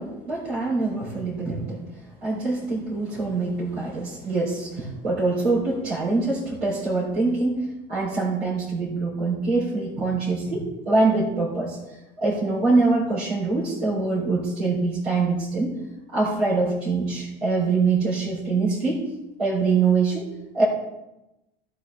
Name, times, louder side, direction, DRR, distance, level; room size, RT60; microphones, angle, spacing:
voice 1, 0.0-1.8 2.2-11.8 12.2-15.7 16.1-19.0 19.4-20.3 20.5-20.6, right 3 dB, 90° right, -8 dB, 3.7 m, -24 dB
14.5 x 8.4 x 3.5 m, 0.95 s
hypercardioid pair, 75°, 30 cm